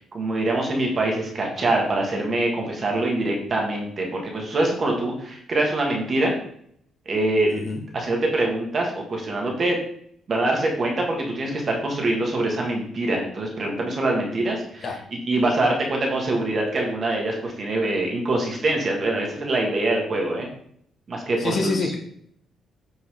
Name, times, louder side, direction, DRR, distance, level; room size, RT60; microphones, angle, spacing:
voice 1, 0.0-6.3 7.0-7.7 7.9-9.8 10.3-14.9 15.3-20.5 21.1-21.9, right 2 dB, 30° right, 0 dB, 1.5 m, -24 dB
voice 2, 7.5-7.8 14.8-15.0 21.4-21.9, left 3 dB, 35° left, 1 dB, 1.3 m, -26 dB
8.4 x 4.5 x 3.7 m, 0.66 s
cardioid pair, 170°, 0 cm